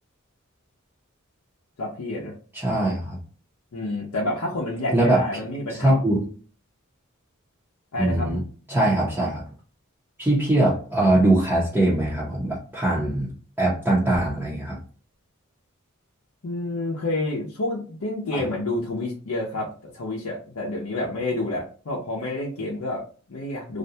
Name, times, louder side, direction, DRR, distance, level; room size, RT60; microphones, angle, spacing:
voice 1, 1.8-2.3 3.7-6.0 7.9-8.3 16.4-23.8, left 2 dB, 70° left, -4 dB, 0.6 m, -29 dB
voice 2, 2.5-3.2 4.9-5.2 5.8-6.2 8.0-8.4 8.7-9.4 10.2-13.3 13.6-14.8 18.3-18.4, right 1 dB, 10° right, -7 dB, 0.6 m, -21 dB
2.5 x 2.2 x 2.7 m, 0.39 s
head